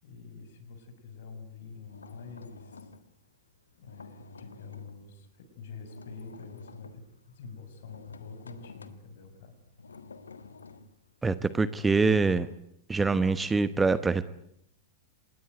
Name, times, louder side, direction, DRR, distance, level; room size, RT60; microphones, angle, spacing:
voice 1, 0.0-2.9 3.8-9.6, left 4 dB, 60° left, 9 dB, 6.6 m, -46 dB
sound 1, 1.7-5.1 5.4-12.6, left 4 dB, 75° left, 1.7 m, -51 dB
voice 2, 11.2-12.5 12.9-14.2, right 4 dB, 10° right, 15 dB, 1.1 m, -24 dB
27.0 x 20.5 x 9.4 m, 0.75 s
figure-of-eight pair, 90°, 0 cm